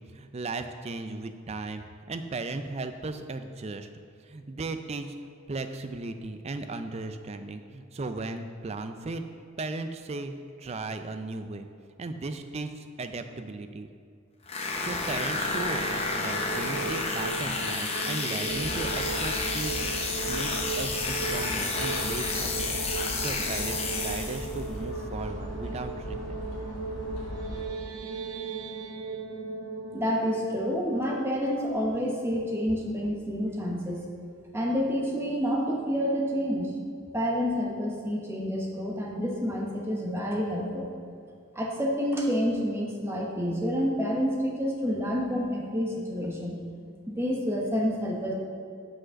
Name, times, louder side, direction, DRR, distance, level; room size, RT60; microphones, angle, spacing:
voice 1, 0.1-3.9 4.2-5.2 5.5-9.3 9.6-11.7 12.0-13.9 14.8-22.8 23.2-26.4, right 3 dB, 30° right, 8 dB, 0.4 m, -36 dB
sound 1, 14.5-24.6, left 3 dB, 30° left, 0.6 m, -31 dB
sound 2, 15.2-32.1, right 4 dB, 90° right, 0.8 m, -37 dB
sound 3, 18.5-27.7, equal, 85° left, 1.7 m, -39 dB
voice 2, 29.9-34.0 34.5-36.7 37.1-40.9 41.5-46.6 47.1-48.3, equal, 10° right, -2 dB, 1.0 m, -28 dB
6.2 x 5.1 x 6.3 m, 2.3 s
head